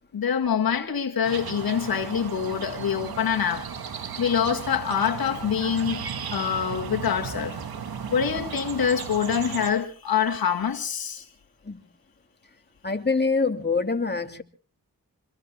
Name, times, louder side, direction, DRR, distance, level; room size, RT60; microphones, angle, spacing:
voice 1, 0.1-3.7 4.2-6.1 6.3-7.6 8.1-11.3, left 7 dB, 80° left, 2.0 m, -25 dB
sound 1, 1.2-9.7, right 6 dB, 85° right, 2.3 m, -35 dB
voice 2, 12.8-14.4, left 4 dB, 30° left, 2.6 m, -25 dB
27.0 x 22.5 x 2.3 m
cardioid pair, 45°, 36 cm